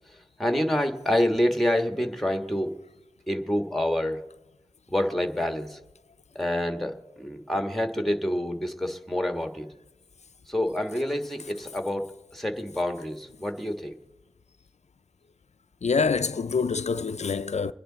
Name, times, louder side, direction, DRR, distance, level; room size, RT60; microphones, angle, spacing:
voice 1, 0.4-2.7 3.3-4.2 4.9-5.8 6.3-9.7 10.5-13.9, left 1 dB, ahead, 1.4 m, -27 dB
voice 2, 15.8-17.7, left 5 dB, 85° left, 0.4 m, -26 dB
24.5 x 10.0 x 3.9 m
wide cardioid pair, 40°, 11 cm